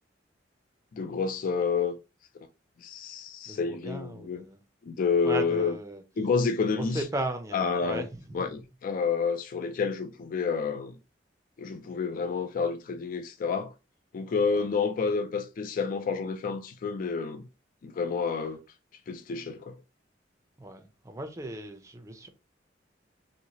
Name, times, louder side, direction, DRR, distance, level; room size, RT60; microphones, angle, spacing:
voice 1, 0.9-1.9 2.8-4.4 4.8-5.7 6.2-7.0 7.5-8.1 8.3-11.0 11.6-13.7 14.1-17.4 17.8-18.6 19.1-19.8, left 5 dB, 50° left, 0.3 m, -29 dB
voice 2, 3.5-4.6 5.2-6.0 6.7-8.5 14.5-14.6 20.6-22.3, right 1 dB, 15° right, 0.5 m, -36 dB
3.0 x 2.7 x 2.8 m
head